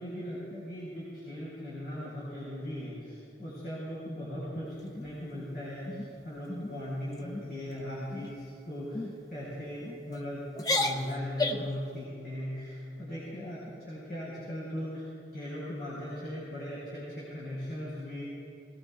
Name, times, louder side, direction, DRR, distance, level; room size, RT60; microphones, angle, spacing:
voice 1, 0.0-15.1 15.3-18.3, equal, 60° left, -8 dB, 3.7 m, -39 dB
sound 1, 4.8-5.4 5.9-6.1 6.5-6.8 7.1-7.5 8.1-8.5 8.9-9.1 9.8-10.2 10.5-11.8, left 2 dB, 20° left, 0.5 m, -33 dB
19.0 x 18.0 x 2.3 m, 2.5 s
head